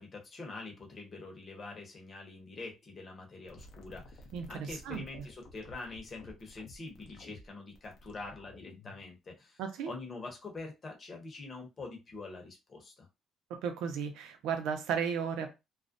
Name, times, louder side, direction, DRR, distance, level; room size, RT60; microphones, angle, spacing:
voice 1, 0.0-9.6 9.9-13.1, left 3 dB, 35° left, 0.9 m, -45 dB
sound 1, 3.5-9.1, left 1 dB, 65° left, 0.6 m, -53 dB
voice 2, 4.3-5.0 9.6-9.9 13.5-15.5, right 7 dB, 90° right, 0.5 m, -34 dB
2.4 x 2.0 x 2.5 m
cardioid pair, 120°, 0 cm